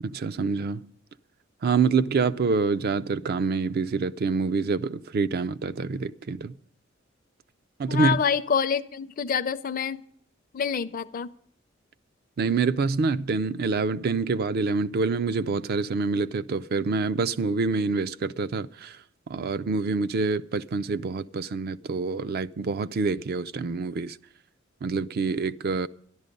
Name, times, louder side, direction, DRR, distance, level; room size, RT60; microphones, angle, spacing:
voice 1, 0.0-0.9 1.6-6.5 7.8-8.2 12.4-19.0 19.3-24.2 24.8-25.9, right 4 dB, 50° right, 0.4 m, -26 dB
voice 2, 7.9-10.0 10.5-11.3, left 7 dB, 45° left, 0.5 m, -26 dB
13.0 x 11.5 x 5.2 m
head